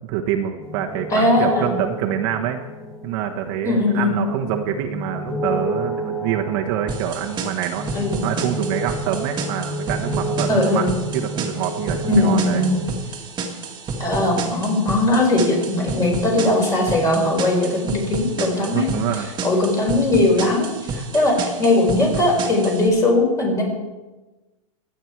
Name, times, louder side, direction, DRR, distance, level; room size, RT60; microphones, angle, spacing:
voice 1, 0.0-2.6 3.0-7.8 8.2-10.9 11.1-12.7 18.6-19.3, right 10 dB, 50° right, 2 dB, 1.3 m, -26 dB
sound 1, 0.6-12.9, right 1 dB, 5° left, 1.0 m, -31 dB
voice 2, 1.1-1.7 3.6-4.2 7.9-8.2 10.5-10.9 12.1-12.7 14.0-19.0 19.4-23.6, left 2 dB, 20° left, 0 dB, 4.6 m, -19 dB
sound 2, 6.9-22.9, right 4 dB, 25° right, 1.9 m, -30 dB
23.0 x 9.0 x 4.6 m, 1.1 s
supercardioid pair, 140°, 18 cm